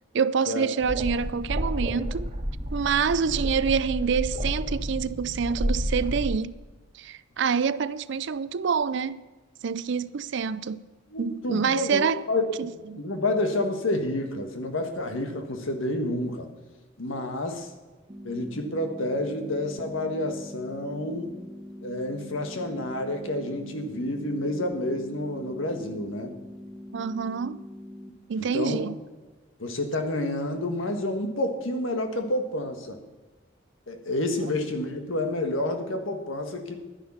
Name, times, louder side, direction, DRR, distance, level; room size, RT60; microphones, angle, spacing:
voice 1, 0.1-2.3 2.7-6.6 7.0-9.2 9.6-10.8 11.2-12.2 12.6-13.0 26.9-27.6 28.3-29.0, right 6 dB, 60° right, 0.5 m, -26 dB
sound 1, 0.8-6.4, equal, 35° right, 1.5 m, -30 dB
voice 2, 11.1-12.4 12.9-16.5 17.0-17.7 18.2-21.3 21.8-26.3 28.4-28.8 29.6-33.0 33.9-36.7, left 1 dB, 80° left, 1.7 m, -29 dB
sound 2, 18.1-28.1, left 1 dB, 15° right, 1.4 m, -43 dB
11.5 x 10.5 x 5.8 m
head